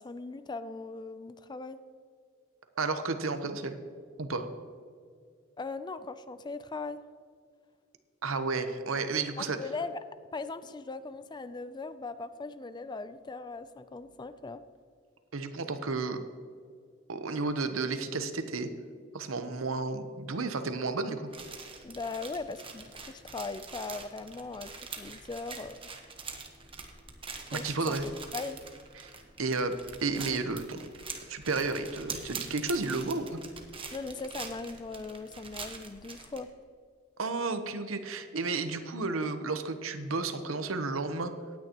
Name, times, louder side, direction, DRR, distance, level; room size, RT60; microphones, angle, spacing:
voice 1, 0.0-1.8 5.6-7.0 9.4-10.0 10.3-14.6 21.8-25.8 27.5-28.0 28.3-28.6 33.9-36.5, left 3 dB, 20° left, 12 dB, 0.4 m, -39 dB
voice 2, 2.8-3.8 4.2-4.5 8.2-9.6 15.3-16.2 17.1-18.7 19.1-21.3 27.5-28.1 28.9-29.1 29.4-29.8 30.0-30.9 31.3-33.4 37.2-41.3, right 3 dB, 75° right, 9 dB, 0.9 m, -32 dB
sound 1, 21.3-36.4, right 5 dB, 25° right, 1.1 m, -44 dB
17.5 x 9.5 x 3.0 m, 2.1 s
head